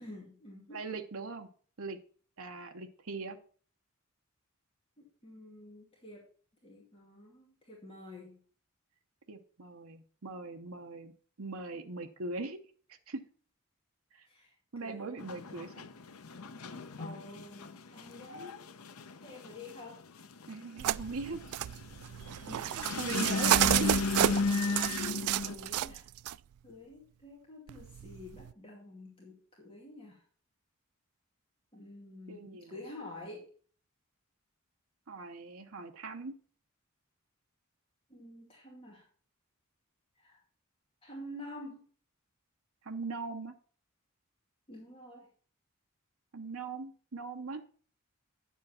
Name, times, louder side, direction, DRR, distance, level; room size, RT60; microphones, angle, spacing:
voice 1, 0.0-0.8 5.0-6.3 6.6-8.4 14.2-14.5 14.8-15.2 15.6-15.7 17.0-18.6 19.2-20.0 22.4-22.8 25.5-26.1 26.6-30.2 31.7-33.5 38.1-39.1 40.2-40.4 41.0-41.8 44.7-45.3, left 1 dB, 25° left, -2 dB, 2.3 m, -49 dB
voice 2, 0.7-1.5 1.8-2.0 2.4-3.4 9.3-11.1 11.4-12.6 12.9-13.2 14.1-14.3 14.7-15.9 20.5-21.6 22.6-24.0 32.3-32.7 35.1-36.3 42.8-43.6 46.3-47.6, right 3 dB, 70° right, 5 dB, 0.9 m, -40 dB
sound 1, 15.2-25.5, left 4 dB, 85° left, 0.8 m, -35 dB
sound 2, 20.8-26.3 27.7-28.5, right 12 dB, 90° right, 0.3 m, -31 dB
9.7 x 7.4 x 4.3 m, 0.43 s
head